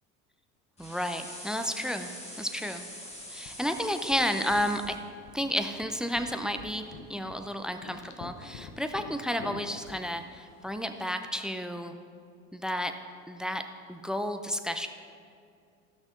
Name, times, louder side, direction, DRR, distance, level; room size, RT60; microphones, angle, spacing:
sound 1, 0.8-5.0, equal, 15° left, 2.1 m, -44 dB
voice 1, 0.8-2.8 3.3-5.0 5.3-11.9 12.5-12.9 13.3-13.6 13.9-14.9, equal, ahead, 8 dB, 0.6 m, -32 dB
sound 2, 2.9-11.1, left 5 dB, 50° left, 1.2 m, -49 dB
15.5 x 6.1 x 3.7 m, 2.3 s
hypercardioid pair, 70°, 42 cm